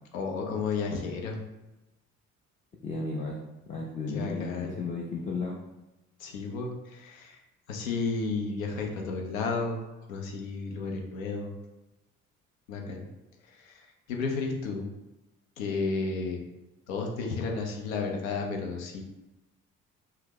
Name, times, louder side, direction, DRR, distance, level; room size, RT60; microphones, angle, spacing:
voice 1, 0.1-1.4 4.1-4.8 6.2-7.4 7.7-11.6 12.7-13.1 13.5-14.9 15.6-16.4 16.9-19.0, left 4 dB, 75° left, 2 dB, 0.6 m, -32 dB
voice 2, 2.8-3.4 3.7-5.6, left 3 dB, 20° left, -2 dB, 0.4 m, -34 dB
2.7 x 2.2 x 3.4 m, 1.0 s
figure-of-eight pair, 45°, 42 cm